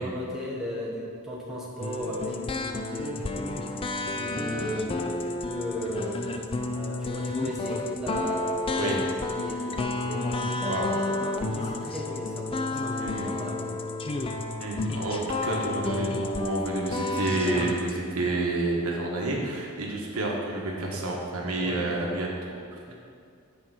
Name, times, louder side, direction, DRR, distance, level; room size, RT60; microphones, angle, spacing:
voice 1, 0.0-6.3 6.7-10.8 11.2-13.8 21.6-21.9 22.9-23.0, equal, ahead, -6 dB, 1.3 m, -36 dB
sound 1, 1.8-17.9, left 2 dB, 25° left, 0.4 m, -31 dB
voice 2, 10.6-10.9 13.0-13.3 14.6-22.8, right 2 dB, 75° right, -2 dB, 1.4 m, -29 dB
8.8 x 4.4 x 5.9 m, 2.3 s
head